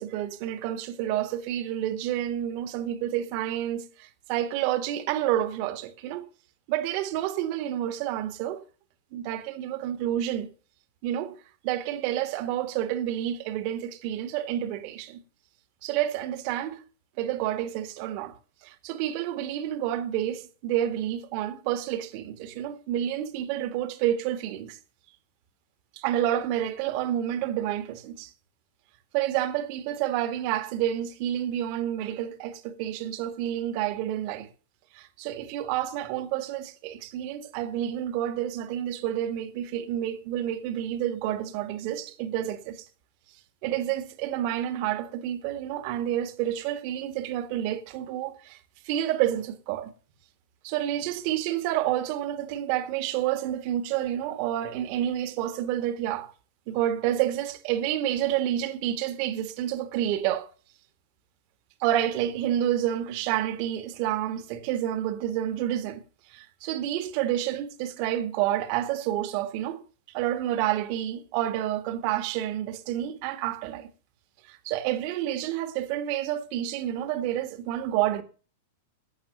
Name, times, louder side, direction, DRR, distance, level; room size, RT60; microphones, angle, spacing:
voice 1, 0.0-6.2 6.7-8.6 9.1-10.5 11.0-11.3 11.6-15.2 15.8-16.8 17.2-18.3 18.6-24.8 26.0-28.3 29.1-34.5 34.9-42.8 43.6-48.6 48.9-49.9 50.6-56.3 56.7-60.5 61.8-66.0 66.3-69.8 70.1-73.9 74.5-78.2, right 12 dB, 50° right, 1.8 m, -29 dB
12.5 x 8.9 x 6.9 m
figure-of-eight pair, 95°, 0 cm